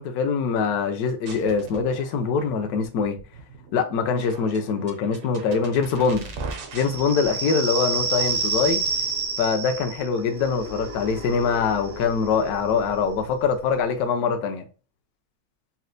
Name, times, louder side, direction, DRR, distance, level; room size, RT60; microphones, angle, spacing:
voice 1, 0.0-3.2 3.7-6.3 6.7-8.8 9.4-14.6, left 5 dB, 70° left, 1.0 m, -23 dB
sound 1, 1.2-9.3, right 3 dB, 65° right, 0.7 m, -41 dB
sound 2, 6.8-14.0, right 3 dB, 80° right, 1.8 m, -30 dB
4.2 x 2.1 x 2.5 m
omnidirectional pair, 2.0 m